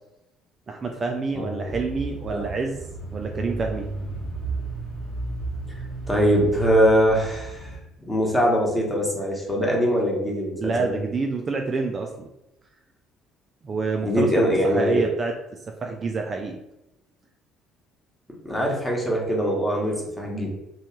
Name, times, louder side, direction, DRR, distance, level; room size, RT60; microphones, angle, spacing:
voice 1, 0.7-2.8 3.1-3.9 10.6-12.3 13.6-15.3 15.8-16.6 19.7-19.9, right 4 dB, 30° right, 2 dB, 0.3 m, -28 dB
voice 2, 1.3-1.7 2.3-2.5 5.8-11.0 14.0-15.1 18.3-20.5, equal, 10° left, -2 dB, 1.0 m, -23 dB
Bicycle / Mechanisms, 1.7-7.8, right 2 dB, 65° left, 1.1 m, -34 dB
3.1 x 2.3 x 2.9 m, 0.91 s
figure-of-eight pair, 50°, 0 cm